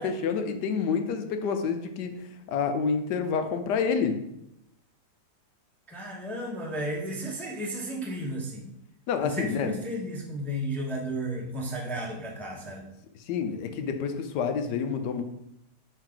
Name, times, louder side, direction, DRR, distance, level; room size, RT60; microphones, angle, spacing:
voice 1, 0.0-4.2 9.1-9.7 13.3-15.2, left 6 dB, 85° left, 7 dB, 1.3 m, -28 dB
voice 2, 5.9-8.7 9.2-12.9, right 1 dB, ahead, -2 dB, 0.6 m, -33 dB
5.5 x 4.6 x 3.8 m, 0.82 s
omnidirectional pair, 1.8 m